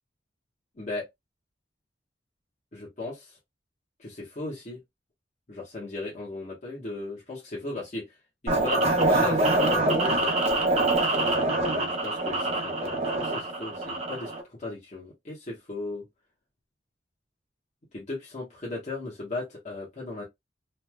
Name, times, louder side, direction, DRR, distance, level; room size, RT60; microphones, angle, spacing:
voice 1, 2.7-3.4 4.0-4.8 5.5-8.1 8.4-10.4 11.1-16.0 17.9-20.2, left 2 dB, 40° left, 1.2 m, -37 dB
sound 1, 8.5-14.4, right 2 dB, 35° right, 0.8 m, -25 dB
3.2 x 2.6 x 2.2 m
head